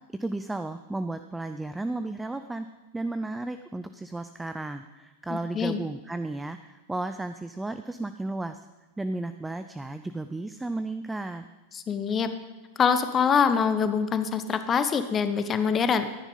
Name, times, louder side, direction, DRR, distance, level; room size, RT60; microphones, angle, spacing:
voice 1, 0.2-2.7 2.9-8.6 9.0-11.4, right 2 dB, 5° right, 10 dB, 0.5 m, -33 dB
voice 2, 11.7-12.3 12.8-16.1, left 6 dB, 25° left, 10 dB, 1.0 m, -24 dB
14.0 x 10.0 x 5.6 m, 1.2 s
figure-of-eight pair, 90°, 0 cm